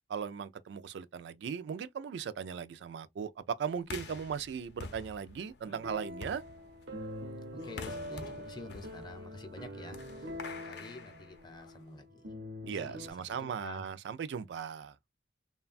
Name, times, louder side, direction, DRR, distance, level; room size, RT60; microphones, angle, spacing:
voice 1, 0.1-6.4 12.7-15.0, right 7 dB, 70° right, 0.3 m, -38 dB
sound 1, 3.8-11.9, left 3 dB, 65° left, 0.6 m, -48 dB
sound 2, 5.6-13.1, left 1 dB, 90° right, 0.7 m, -44 dB
voice 2, 7.6-12.3 12.7-13.9, left 2 dB, 25° left, 0.6 m, -48 dB
3.1 x 2.2 x 2.4 m
head